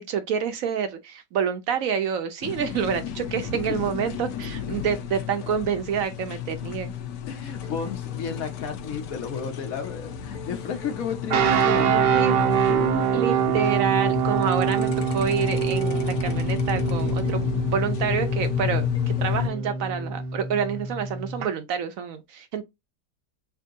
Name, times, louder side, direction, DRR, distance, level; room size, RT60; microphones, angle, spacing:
voice 1, 0.0-6.9 12.1-12.3 13.1-22.6, right 7 dB, 65° right, 0.9 m, -28 dB
sound 1, 2.4-19.5, left 10 dB, 90° left, 1.3 m, -31 dB
voice 2, 7.3-13.6 16.4-16.5, left 6 dB, 60° left, 1.1 m, -33 dB
sound 2, 7.6-19.9, equal, 25° left, 1.1 m, -46 dB
sound 3, 11.3-21.5, right 7 dB, 90° right, 1.4 m, -25 dB
3.5 x 2.7 x 3.7 m
omnidirectional pair, 1.8 m